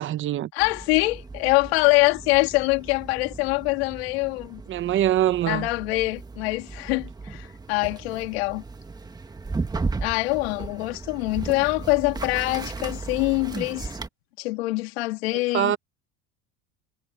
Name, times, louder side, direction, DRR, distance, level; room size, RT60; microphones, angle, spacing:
voice 1, 0.0-0.5 4.7-5.7 15.5-15.8, right 12 dB, 40° right, 1.0 m, -23 dB
voice 2, 0.5-4.6 5.5-8.6 10.0-13.9 14.4-15.7, left 24 dB, 90° left, 2.7 m, -24 dB
sound 1, 0.6-14.1, right 3 dB, 15° right, 1.5 m, -36 dB
supercardioid pair, 120°, 30 cm